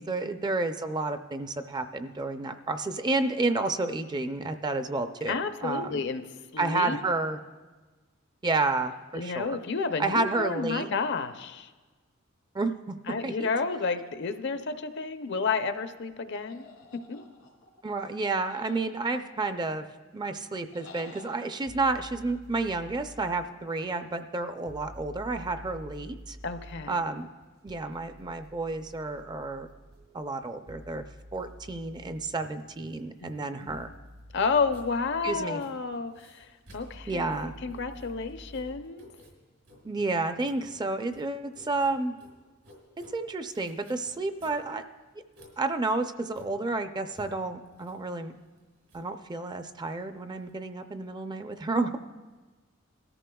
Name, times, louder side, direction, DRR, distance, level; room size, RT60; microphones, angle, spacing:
voice 1, 0.0-6.0 6.6-7.4 8.4-9.6 10.0-10.9 12.5-13.0 13.2-13.5 17.8-19.8 20.1-26.4 26.9-27.3 27.6-29.7 30.1-31.1 31.3-33.9 35.2-35.6 37.1-37.6 39.8-42.1 43.1-44.8 45.6-48.3 48.9-52.0, right 3 dB, 20° right, 8 dB, 0.4 m, -30 dB
voice 2, 5.3-7.0 9.1-11.7 13.1-16.7 17.1-17.2 26.4-27.0 33.2-33.9 34.3-39.1, left 4 dB, 60° left, 9 dB, 0.6 m, -31 dB
sound 1, 16.5-17.8 18.5-19.6 20.7-21.5, left 3 dB, 90° left, 2.1 m, -51 dB
sound 2, 21.6-38.8, equal, 50° right, 0.7 m, -50 dB
Writing, 31.4-50.5, left 1 dB, 80° right, 4.1 m, -56 dB
20.0 x 13.5 x 2.3 m, 1.3 s
head